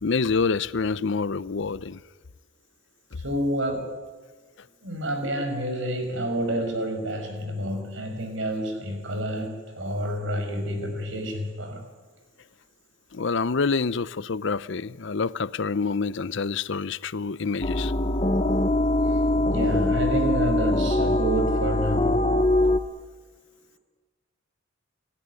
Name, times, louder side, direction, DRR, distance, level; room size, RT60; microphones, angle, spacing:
voice 1, 0.0-2.0 13.1-17.9, left 4 dB, 65° left, 0.6 m, -27 dB
voice 2, 3.2-4.0 4.8-11.9 19.1-19.2 19.5-22.2, right 1 dB, 65° right, 5.7 m, -29 dB
sound 1, 17.6-22.8, left 1 dB, 30° left, 1.0 m, -22 dB
29.5 x 14.5 x 9.7 m
head